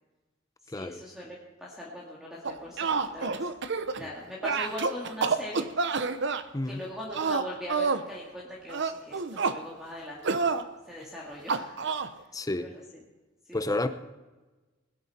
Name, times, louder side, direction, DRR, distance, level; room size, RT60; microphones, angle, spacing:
voice 1, 0.6-3.5 3.9-5.7 6.6-10.5 10.9-11.9 12.6-12.7 13.5-13.9, left 1 dB, ahead, 2.1 m, -40 dB
sound 1, 2.4-4.1 4.4-6.4 7.1-8.1 8.7-9.6 10.2-10.6 11.5-12.1, right 4 dB, 65° right, 0.8 m, -28 dB
voice 2, 12.3-12.7 13.5-13.9, left 2 dB, 20° left, 0.6 m, -30 dB
20.0 x 10.5 x 4.3 m
head